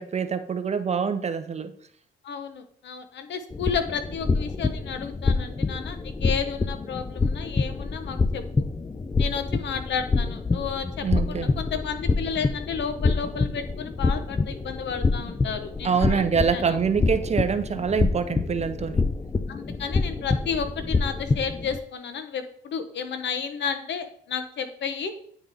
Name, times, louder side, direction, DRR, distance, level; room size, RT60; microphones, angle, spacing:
voice 1, 0.0-1.7 11.0-11.5 15.8-19.0, right 6 dB, 35° right, 10 dB, 0.6 m, -25 dB
voice 2, 2.2-8.7 9.2-16.8 19.5-25.1, left 6 dB, 65° left, 9 dB, 0.8 m, -32 dB
sound 1, 3.5-21.8, left 3 dB, 15° left, 0.3 m, -27 dB
9.2 x 3.7 x 3.4 m, 0.62 s
cardioid pair, 90°, 20 cm